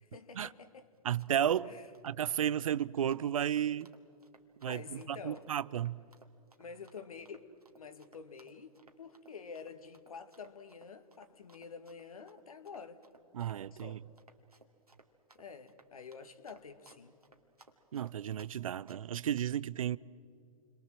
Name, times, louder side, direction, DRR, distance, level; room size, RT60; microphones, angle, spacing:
voice 1, 0.0-0.9 1.6-1.9 4.7-5.5 6.6-7.5 7.8-13.0 13.7-14.0 15.4-17.2, left 5 dB, 70° left, 1.9 m, -48 dB
voice 2, 1.0-1.7 2.0-3.9 4.6-6.0 13.3-14.0 17.9-20.0, right 10 dB, 65° right, 0.6 m, -33 dB
Run, 1.0-18.5 18.9-19.2, right 3 dB, 90° right, 2.4 m, -62 dB
29.0 x 23.0 x 7.6 m
figure-of-eight pair, 110°, 19 cm